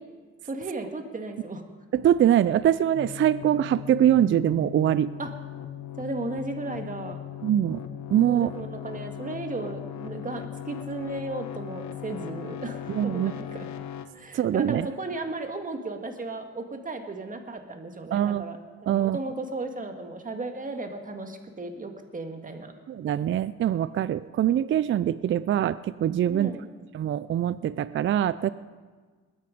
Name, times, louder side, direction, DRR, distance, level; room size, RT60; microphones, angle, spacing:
voice 1, 0.4-1.6 5.2-5.3 6.0-7.2 8.3-13.7 14.1-22.8 26.3-26.7, right 2 dB, 25° right, 5 dB, 1.9 m, -35 dB
voice 2, 1.9-5.1 7.4-7.8 8.1-8.5 12.9-13.3 14.3-14.9 18.1-18.5 18.9-19.2 22.9-26.5 26.9-28.5, right 11 dB, 40° right, 16 dB, 0.4 m, -23 dB
sound 1, 2.9-14.1, left 10 dB, 70° left, 1.2 m, -38 dB
21.0 x 9.3 x 5.2 m, 1.4 s
cardioid pair, 90°, 30 cm